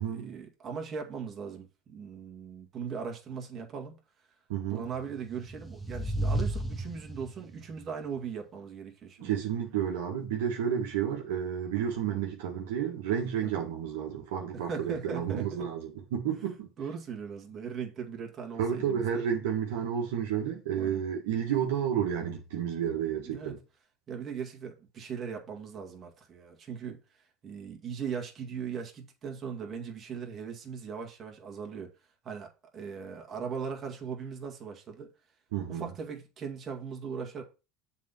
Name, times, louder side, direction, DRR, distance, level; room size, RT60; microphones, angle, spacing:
voice 1, 0.1-3.9 4.7-9.4 13.4-13.6 14.5-15.7 16.4-19.2 20.7-21.1 23.2-23.6 24.1-27.0 27.4-31.9 32.2-32.5 32.7-35.1 35.7-37.4, right 6 dB, 40° right, 2.1 m, -39 dB
voice 2, 4.5-4.9 9.2-16.7 18.6-23.6 35.5-35.9, right 8 dB, 80° right, 1.5 m, -31 dB
sound 1, 5.2-7.5, right 1 dB, ahead, 1.7 m, -33 dB
7.3 x 4.2 x 5.7 m
hypercardioid pair, 85°, 0 cm